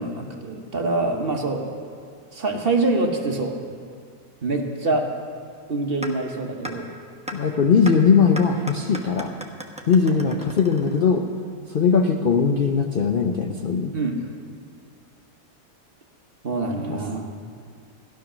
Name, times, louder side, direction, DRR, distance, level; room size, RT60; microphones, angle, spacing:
voice 1, 0.0-1.7 2.3-3.6 4.4-5.1 5.7-6.9 13.9-14.2 16.4-17.4, right 2 dB, 40° right, 3 dB, 1.1 m, -25 dB
sound 1, 6.0-6.1 6.6-6.7 7.3-7.4 7.9-8.0 8.4-11.3, equal, 5° right, 0.8 m, -35 dB
voice 2, 7.3-9.3 9.9-11.3 11.7-13.9 16.8-17.0, left 5 dB, 75° left, 4 dB, 0.4 m, -20 dB
15.0 x 11.5 x 6.2 m, 2.2 s
omnidirectional pair, 1.9 m